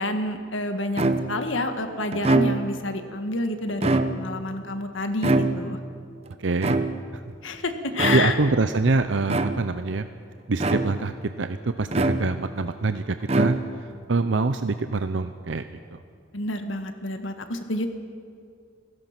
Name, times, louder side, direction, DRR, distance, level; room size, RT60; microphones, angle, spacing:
voice 1, 0.0-5.8 7.4-8.4 16.3-17.9, left 2 dB, 85° left, 7 dB, 1.7 m, -28 dB
sound 1, 1.0-1.5 2.1-2.9 3.7-4.5 5.2-5.9 6.6-7.3 7.9-8.5 9.3-9.9 10.6-11.2 11.9-12.6 13.2-14.0, right 2 dB, 30° right, 0.8 m, -24 dB
voice 2, 6.4-6.8 8.1-10.1 10.5-15.6 15.9-16.0, right 3 dB, 75° right, 10 dB, 0.7 m, -25 dB
29.0 x 16.5 x 6.0 m, 2.3 s
head